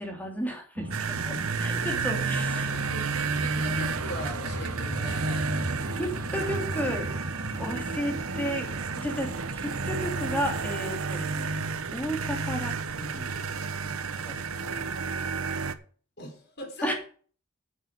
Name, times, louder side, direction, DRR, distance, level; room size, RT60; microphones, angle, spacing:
voice 1, 0.0-2.8 5.9-7.1 7.6-8.7 9.0-11.5 11.9-12.7 13.0-13.3 14.3-14.4 14.7-14.8 16.8-16.9, equal, 10° left, 2 dB, 3.0 m, -33 dB
sound 1, 0.8-10.8, right 1 dB, 55° right, 2.4 m, -37 dB
sound 2, 0.9-15.7, right 4 dB, 80° right, 1.0 m, -31 dB
voice 2, 1.8-2.2 2.5-3.1 3.4-5.6 16.2-16.9, left 1 dB, 50° left, 3 dB, 4.4 m, -40 dB
Wind instrument woodwind instrument, 3.7-7.8, right 4 dB, 85° left, 5.1 m, -52 dB
10.0 x 7.3 x 6.7 m, 0.43 s
head